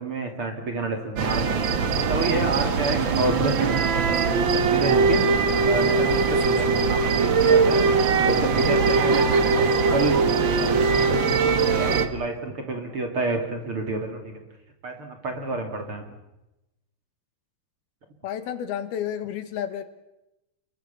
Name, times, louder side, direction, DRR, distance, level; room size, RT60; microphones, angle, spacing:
voice 1, 0.0-1.6 2.0-5.2 5.6-7.9 8.2-10.2 10.6-14.4 14.8-16.1, right 2 dB, 35° right, 4 dB, 3.2 m, -29 dB
sound 1, 1.2-12.1, right 4 dB, 75° right, 1.1 m, -21 dB
voice 2, 18.2-19.8, left 9 dB, 75° left, 10 dB, 3.4 m, -31 dB
30.0 x 22.0 x 7.0 m, 0.94 s
omnidirectional pair, 4.5 m